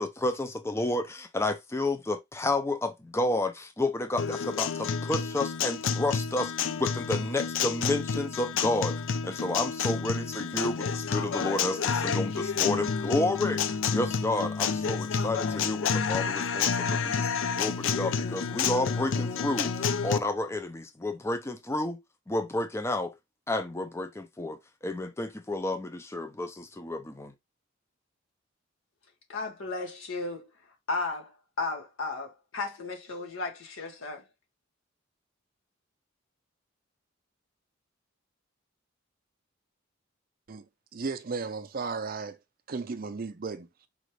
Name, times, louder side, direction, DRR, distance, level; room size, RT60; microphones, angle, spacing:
voice 1, 0.0-6.5 6.8-22.0 22.3-23.1 23.5-27.3, left 2 dB, 15° left, 0.4 m, -31 dB
Guitar, 4.2-20.2, left 6 dB, 70° left, 0.4 m, -29 dB
voice 2, 29.3-30.5 30.9-31.3 31.6-34.2, left 3 dB, 90° left, 1.5 m, -34 dB
voice 3, 40.9-42.4 42.7-43.7, right 4 dB, 45° right, 0.5 m, -34 dB
5.0 x 2.5 x 3.1 m
head